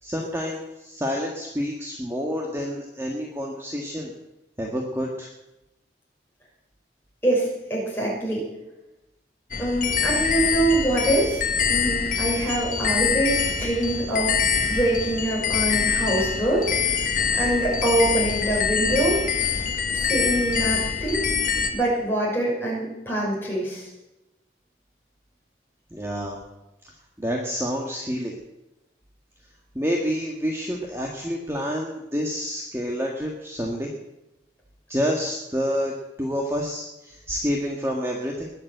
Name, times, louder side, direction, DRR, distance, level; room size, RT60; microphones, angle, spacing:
voice 1, 0.0-4.1 4.6-5.3 25.9-26.4 27.2-28.3 29.7-33.9 34.9-35.9 36.2-38.5, equal, 15° right, 0 dB, 1.6 m, -28 dB
voice 2, 7.2-8.5 9.6-11.4 11.7-14.4 14.7-17.1 17.3-19.2 19.9-21.2 21.7-23.9, right 1 dB, 10° left, -5 dB, 6.4 m, -24 dB
sound 1, 9.5-21.7, left 6 dB, 45° left, 1.4 m, -25 dB
20.5 x 7.4 x 7.9 m, 0.94 s
head